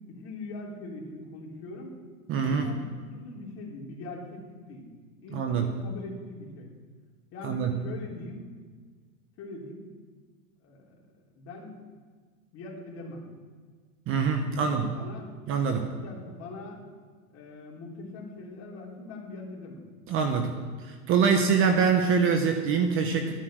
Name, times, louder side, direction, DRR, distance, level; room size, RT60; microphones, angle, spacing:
voice 1, 0.1-2.0 2.3-4.9 5.2-6.7 7.3-8.4 9.4-9.8 10.6-11.0 11.4-11.9 12.5-13.2 14.4-15.3 15.8-16.8 17.3-19.8, left 2 dB, 35° left, -2 dB, 3.5 m, -42 dB
voice 2, 2.3-2.7 5.3-5.7 7.4-7.7 14.1-14.9 15.5-15.9 20.1-20.6 20.9-23.3, right 6 dB, 30° right, 6 dB, 1.1 m, -24 dB
13.0 x 10.0 x 6.5 m, 1.5 s
supercardioid pair, 140°, 43 cm